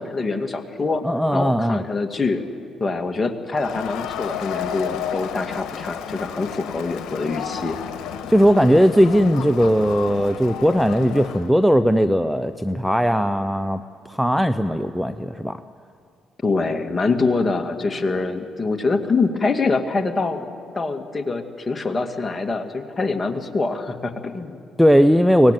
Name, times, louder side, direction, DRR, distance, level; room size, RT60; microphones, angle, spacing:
voice 1, 0.0-1.0 1.3-2.4 2.8-7.8 16.4-20.5 20.7-24.6, left 3 dB, 30° left, 5 dB, 2.2 m, -24 dB
voice 2, 1.0-1.8 8.3-13.8 14.1-15.6 24.8-25.5, equal, ahead, 11 dB, 0.7 m, -18 dB
Crowd, 3.6-11.5, left 9 dB, 75° left, 1.6 m, -32 dB
23.0 x 18.5 x 9.2 m, 2.4 s
supercardioid pair, 65°, 0 cm